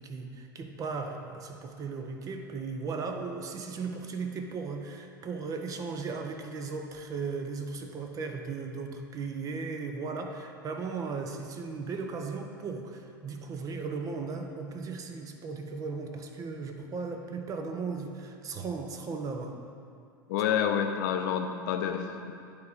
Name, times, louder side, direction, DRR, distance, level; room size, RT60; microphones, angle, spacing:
voice 1, 0.0-19.6, right 4 dB, 30° right, 5 dB, 0.7 m, -36 dB
voice 2, 20.3-22.3, left 8 dB, 55° left, 5 dB, 0.6 m, -28 dB
9.4 x 3.5 x 5.0 m, 2.4 s
figure-of-eight pair, 90°, 12 cm